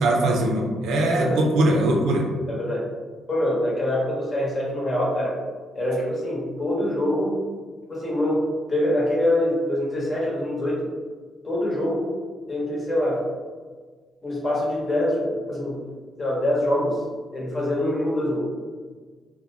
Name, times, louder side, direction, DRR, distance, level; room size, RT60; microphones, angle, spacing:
voice 1, 0.0-2.3, right 1 dB, 85° right, -1 dB, 0.5 m, -21 dB
voice 2, 2.5-2.9 3.3-5.3 5.7-7.4 7.9-10.9 11.4-12.1 12.5-13.2 14.2-15.8 16.2-17.0 17.3-18.4, left 1 dB, 30° left, -5 dB, 0.9 m, -24 dB
2.4 x 2.1 x 2.8 m, 1.5 s
cardioid pair, 90°, 0 cm